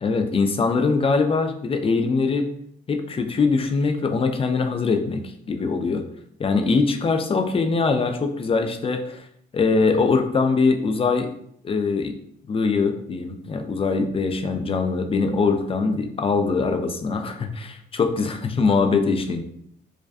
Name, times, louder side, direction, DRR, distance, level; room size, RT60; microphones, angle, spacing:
voice 1, 0.0-2.5 2.9-5.2 5.5-6.0 6.4-9.2 9.5-11.3 11.6-12.1 12.5-19.4, left 4 dB, 30° left, 6 dB, 0.3 m, -22 dB
2.4 x 2.2 x 2.4 m, 0.69 s
supercardioid pair, 70°, 20 cm